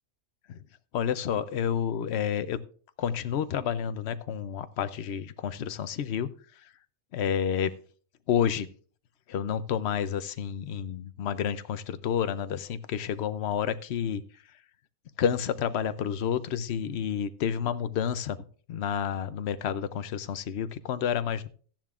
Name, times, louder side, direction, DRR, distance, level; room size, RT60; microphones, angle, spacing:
voice 1, 0.9-2.6 3.0-6.3 7.1-7.7 8.3-8.7 9.3-14.2 15.2-18.4 18.7-21.5, left 8 dB, 60° left, 13 dB, 0.8 m, -29 dB
14.5 x 10.5 x 2.4 m, 0.42 s
omnidirectional pair, 1.4 m